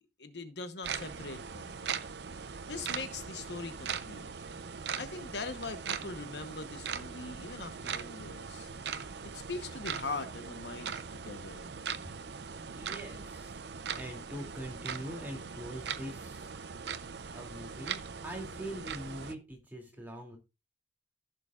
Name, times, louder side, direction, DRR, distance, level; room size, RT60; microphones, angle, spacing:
voice 1, 0.0-1.8 2.7-4.2 5.0-8.7 9.3-11.7 18.5-18.6, left 3 dB, 70° left, 1.0 m, -41 dB
sound 1, 0.8-19.3, right 6 dB, 70° right, 0.6 m, -40 dB
voice 2, 12.7-13.6 13.9-16.5 17.3-20.4, right 1 dB, 10° right, 2.6 m, -43 dB
15.0 x 6.7 x 2.4 m
head